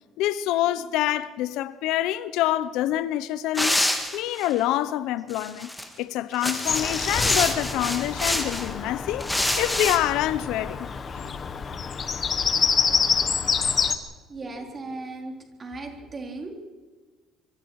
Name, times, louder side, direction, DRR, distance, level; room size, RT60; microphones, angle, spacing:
voice 1, 0.2-5.7 6.0-10.9 11.1-11.4, left 13 dB, 80° left, 0.9 m, -26 dB
sound 1, 3.5-4.5 5.3-5.8 6.3-8.7 9.2-10.0, left 1 dB, 5° left, 2.2 m, -26 dB
Bird vocalization bird call bird song, 6.7-14.0, left 6 dB, 30° left, 1.4 m, -27 dB
voice 2, 14.3-15.3 15.6-16.5, right 2 dB, 25° right, 4.0 m, -36 dB
25.5 x 25.0 x 4.9 m
cardioid pair, 160°, 0 cm